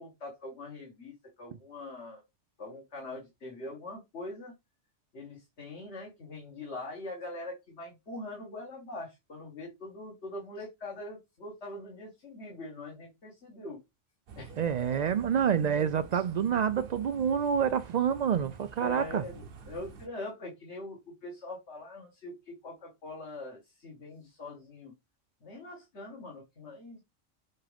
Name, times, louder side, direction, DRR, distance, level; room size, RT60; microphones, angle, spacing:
voice 1, 0.0-2.2 2.6-4.5 5.1-13.8 14.4-14.7 18.8-24.9 25.4-27.0, left 2 dB, 65° left, 2.1 m, -43 dB
sound 1, 14.3-20.1, right 5 dB, 55° right, 0.9 m, -49 dB
voice 2, 14.6-19.2, right 8 dB, 80° right, 0.3 m, -27 dB
7.8 x 3.7 x 3.4 m
omnidirectional pair, 1.3 m